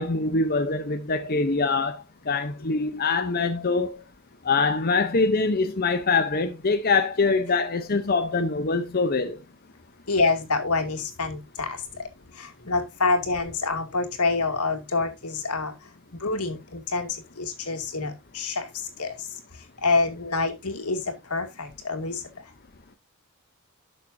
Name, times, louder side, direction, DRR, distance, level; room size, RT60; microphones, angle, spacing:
voice 1, 0.0-4.0 4.4-9.4, left 4 dB, 45° left, 0.8 m, -24 dB
voice 2, 10.1-11.8 12.4-15.7 16.2-18.6 19.0-19.2 19.8-21.0 21.3-22.2, left 3 dB, 85° left, 2.5 m, -26 dB
12.5 x 6.6 x 2.7 m
head